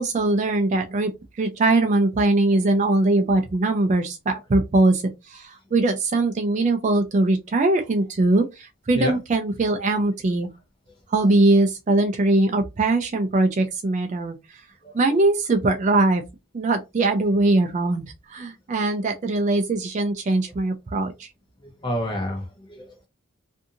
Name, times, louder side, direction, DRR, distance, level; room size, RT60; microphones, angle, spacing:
voice 1, 0.0-10.5 11.1-14.6 14.9-16.2 16.5-21.3, right 2 dB, 35° right, 0.3 m, -21 dB
voice 2, 21.8-23.1, left 1 dB, 20° left, 0.7 m, -29 dB
2.7 x 2.6 x 2.5 m
head